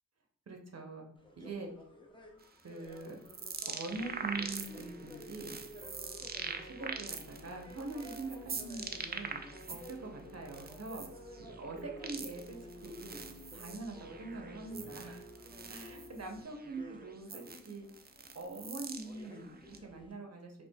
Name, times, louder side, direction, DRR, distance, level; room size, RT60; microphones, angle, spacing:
voice 1, 0.5-1.1 1.4-1.7 2.6-3.2 3.7-5.6 6.5-9.4 9.7-11.1 11.4-13.2 13.5-15.3 15.7-17.9 18.3-20.5, right 3 dB, 50° right, 2 dB, 0.8 m, -43 dB
sound 1, 1.2-20.1, left 2 dB, 15° left, 0.6 m, -55 dB
sound 2, 2.4-10.0 10.3-19.8, right 5 dB, 30° right, 0.4 m, -44 dB
sound 3, 3.9-16.4, right 1 dB, 40° left, 1.1 m, -52 dB
4.4 x 2.4 x 2.2 m, 0.62 s
cardioid pair, 50°, 32 cm